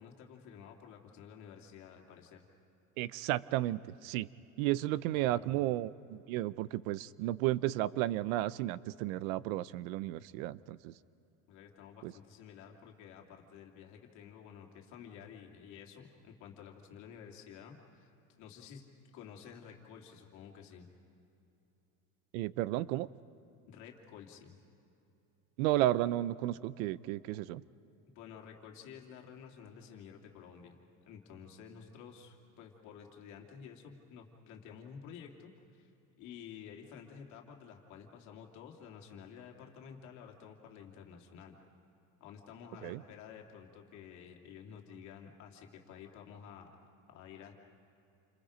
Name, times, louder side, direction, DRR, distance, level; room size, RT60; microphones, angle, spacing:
voice 1, 0.0-2.4 5.1-5.5 11.5-18.8 19.1-20.9 23.7-24.6 28.1-30.8 31.1-35.9 36.2-41.5 42.2-46.7 47.1-47.5, left 7 dB, 45° left, 1 dB, 2.7 m, -51 dB
voice 2, 3.0-4.3 4.6-10.9 12.0-12.1 22.3-23.1 25.6-27.6 42.8-43.0, right 15 dB, 85° right, 18 dB, 0.7 m, -33 dB
29.5 x 26.5 x 5.1 m, 2.8 s
cardioid pair, 175°, 40 cm